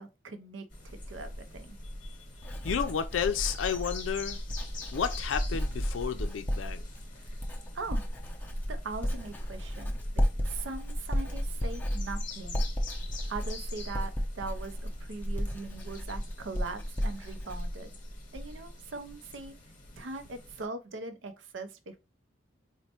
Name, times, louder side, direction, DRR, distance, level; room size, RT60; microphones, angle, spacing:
voice 1, 0.0-1.8 7.2-7.3 7.7-8.1 8.7-10.0 10.4-12.6 13.3-17.9 18.3-19.5 20.0-22.0, right 3 dB, 70° right, 0.5 m, -41 dB
sound 1, 0.7-20.7, left 1 dB, 40° left, 0.9 m, -44 dB
Writing, 1.7-18.7 19.0-19.5, equal, 10° left, 0.5 m, -34 dB
voice 2, 2.6-4.4 4.9-6.8, left 7 dB, 85° left, 0.4 m, -31 dB
4.2 x 2.1 x 2.8 m
head